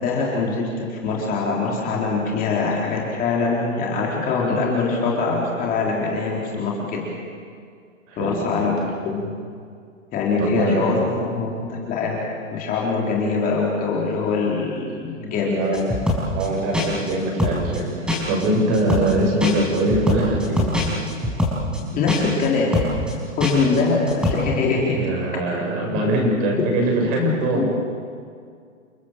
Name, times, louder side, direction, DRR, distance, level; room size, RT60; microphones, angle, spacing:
voice 1, 0.0-7.0 8.2-8.7 9.1-9.3 10.1-12.2 12.5-15.7 18.9-19.0 21.9-22.8 23.4-25.1 27.2-27.7, left 4 dB, 20° left, -2 dB, 3.8 m, -23 dB
voice 2, 8.1-8.7 10.4-11.0 15.4-15.9 16.3-20.7 25.0-27.7, right 1 dB, 30° right, 0 dB, 7.7 m, -23 dB
sound 1, 15.7-16.5 16.7-17.1 17.4-17.8 18.1-18.5 18.7-19.1 19.4-21.8 22.1-22.5 22.7-23.1 23.4-23.8 24.1-24.3, left 1 dB, ahead, 5.5 m, -23 dB
29.5 x 19.5 x 7.5 m, 2.2 s
hypercardioid pair, 145°, 40 cm